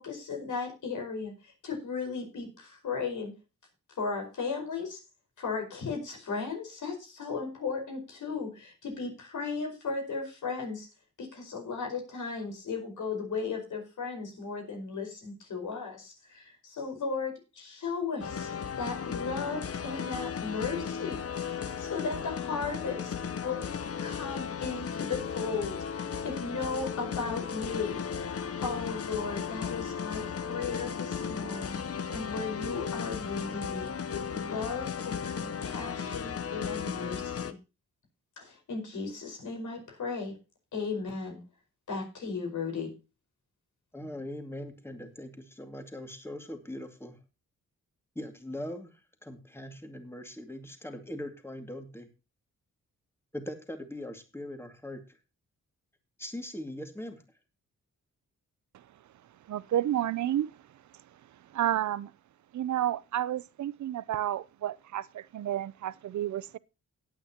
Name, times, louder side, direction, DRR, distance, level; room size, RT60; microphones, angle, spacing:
voice 1, 0.0-3.3 4.0-5.0 5.4-10.9 11.2-18.5 18.8-23.6 24.0-28.0 28.6-37.6 38.4-40.4 40.7-41.4 41.9-42.9, left 4 dB, 75° left, 5.2 m, -36 dB
sound 1, 18.2-37.5, left 7 dB, 50° left, 0.9 m, -35 dB
voice 2, 43.9-47.2 48.2-52.1 53.3-55.2 56.2-57.2, left 1 dB, 10° left, 2.3 m, -41 dB
voice 3, 59.5-60.5 61.5-62.1 62.5-66.6, right 12 dB, 65° right, 0.6 m, -31 dB
17.5 x 9.0 x 2.9 m
cardioid pair, 85°, 31 cm